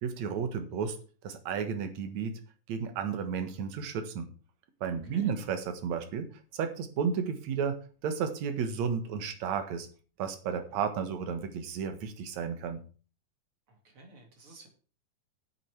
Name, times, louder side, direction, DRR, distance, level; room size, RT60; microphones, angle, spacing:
voice 1, 0.0-1.0 1.2-2.4 2.7-4.3 4.8-6.3 6.5-7.8 8.0-9.9 10.2-12.8, right 6 dB, 65° right, 8 dB, 2.7 m, -32 dB
voice 2, 13.7-14.7, right 3 dB, 45° right, 3 dB, 3.3 m, -53 dB
9.1 x 7.5 x 6.2 m, 0.38 s
omnidirectional pair, 3.7 m